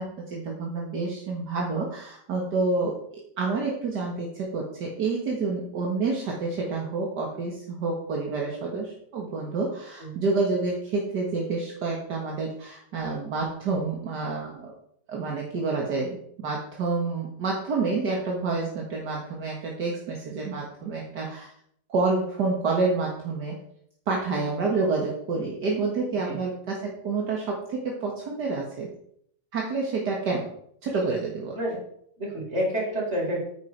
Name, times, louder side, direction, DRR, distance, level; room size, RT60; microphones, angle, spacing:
voice 1, 0.0-3.0 3.4-14.7 15.1-21.5 21.9-23.6 24.1-28.9 29.5-30.5 30.8-31.6, right 3 dB, 65° right, -1 dB, 2.2 m, -28 dB
voice 2, 32.2-33.4, equal, 35° right, -3 dB, 5.2 m, -28 dB
9.4 x 9.3 x 4.7 m, 0.67 s
omnidirectional pair, 1.9 m